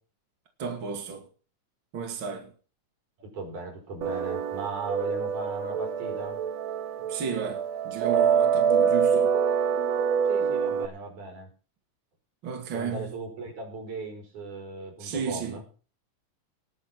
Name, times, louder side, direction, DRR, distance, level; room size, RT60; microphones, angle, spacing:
voice 1, 0.6-1.3 1.9-2.5 7.1-9.3 12.4-13.1 15.0-15.6, right 6 dB, 40° right, 2.7 m, -33 dB
voice 2, 3.2-6.4 10.3-11.5 12.7-15.6, right 3 dB, 85° right, 6.1 m, -37 dB
sound 1, 4.0-10.9, right 7 dB, 70° right, 2.1 m, -25 dB
19.5 x 6.8 x 5.9 m
omnidirectional pair, 3.4 m